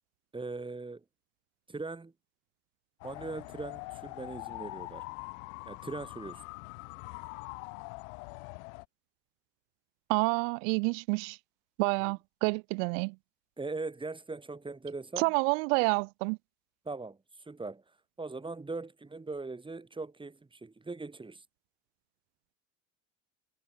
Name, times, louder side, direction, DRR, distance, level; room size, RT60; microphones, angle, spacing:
voice 1, 0.3-1.0 1.7-2.1 3.0-5.0 5.7-6.4 12.0-12.2 13.6-15.3 16.9-17.2 17.5-17.8 18.2-21.4, right 3 dB, 15° right, 2.1 m, -40 dB
sound 1, 3.0-8.8, left 33 dB, 70° left, 0.9 m, -43 dB
voice 2, 10.1-11.4 11.8-13.2 15.2-16.4, right 37 dB, 65° right, 0.6 m, -28 dB
hypercardioid pair, 85°, 39 cm